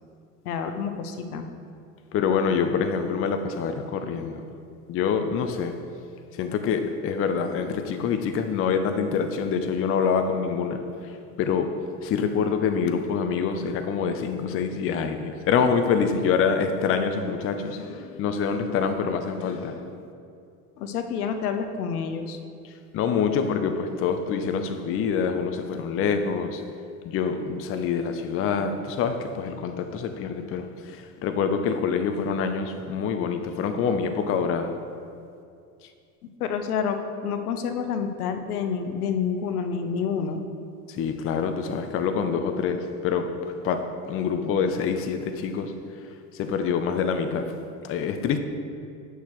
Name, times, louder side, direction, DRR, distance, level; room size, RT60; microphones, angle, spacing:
voice 1, 0.4-1.5 20.8-22.4 36.4-40.4, left 6 dB, 75° left, 8 dB, 0.7 m, -28 dB
voice 2, 2.1-4.4 4.9-5.9 6.3-20.0 22.9-26.7 27.0-34.8 40.9-45.8 46.3-48.4, left 6 dB, 30° left, 7 dB, 0.5 m, -26 dB
8.0 x 6.4 x 3.1 m, 2.4 s
hypercardioid pair, 75°, 45 cm